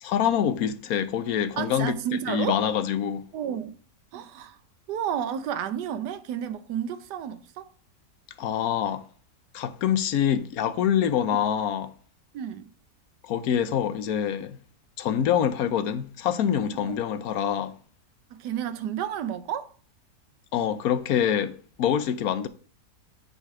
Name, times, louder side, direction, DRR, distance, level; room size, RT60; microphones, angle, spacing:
voice 1, 0.0-3.2 8.4-9.0 9.5-11.9 13.2-14.6 15.0-17.7 20.5-22.5, left 9 dB, 65° left, 1.1 m, -25 dB
voice 2, 1.6-2.6 3.3-3.8 4.1-4.6 4.9-7.7 11.3-11.4 12.3-12.7 16.8-17.0 18.3-19.7, right 9 dB, 85° right, 1.3 m, -31 dB
8.1 x 4.2 x 4.7 m
omnidirectional pair, 1.8 m